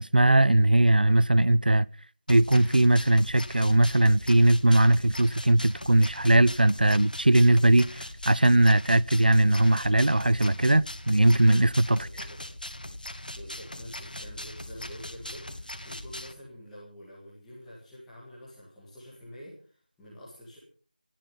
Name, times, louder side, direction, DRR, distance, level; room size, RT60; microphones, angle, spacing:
voice 1, 0.0-1.9 2.3-12.1, right 1 dB, 80° right, 0.6 m, -20 dB
sound 1, 2.3-16.3, left 1 dB, 75° left, 2.6 m, -40 dB
voice 2, 11.9-12.4 13.3-20.6, equal, ahead, 1.8 m, -47 dB
16.0 x 13.5 x 5.6 m
figure-of-eight pair, 180°, 5 cm